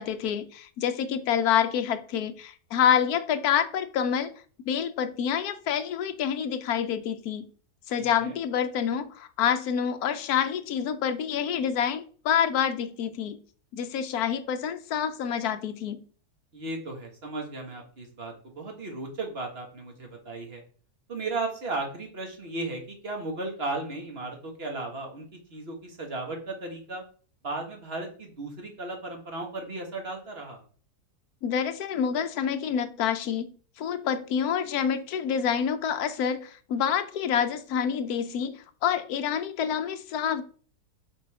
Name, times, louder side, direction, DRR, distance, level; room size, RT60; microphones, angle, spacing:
voice 1, 0.0-4.3 4.7-7.4 7.9-13.4 13.7-16.0 31.4-40.4, left 8 dB, 70° left, 1.2 m, -27 dB
voice 2, 8.0-8.3 16.5-20.6 21.1-27.0 27.4-30.6, right 2 dB, 40° right, 1.7 m, -35 dB
6.5 x 3.9 x 4.8 m
omnidirectional pair, 1.7 m